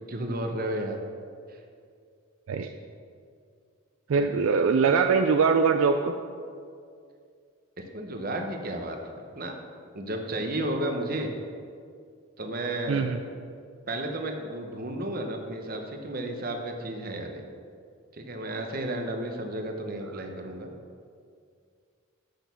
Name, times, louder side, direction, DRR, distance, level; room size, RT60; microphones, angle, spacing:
voice 1, 0.1-1.0 1.5-1.6 4.2-4.3 7.8-9.0 9.3-9.5 9.9-11.3 12.4-13.2 13.9-17.4 18.1-20.7, right 1 dB, 45° right, 4 dB, 0.9 m, -32 dB
voice 2, 4.1-6.1 12.9-13.2, right 5 dB, 70° right, 6 dB, 0.4 m, -22 dB
6.6 x 6.2 x 6.8 m, 2.2 s
head